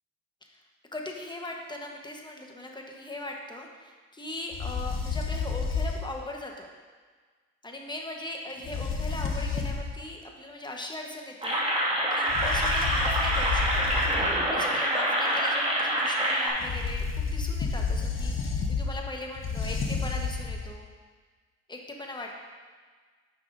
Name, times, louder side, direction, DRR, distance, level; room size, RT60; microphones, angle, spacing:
voice 1, 0.9-6.7 7.6-13.8 14.5-20.9 21.7-22.4, left 2 dB, 15° left, 1 dB, 1.1 m, -39 dB
sound 1, 4.5-6.2 8.6-10.0 12.3-14.5 16.6-20.8, left 4 dB, 45° left, 0.9 m, -30 dB
sound 2, 11.4-16.5, right 1 dB, 20° right, 1.9 m, -26 dB
9.5 x 5.8 x 2.6 m, 1.5 s
cardioid pair, 90°, 30 cm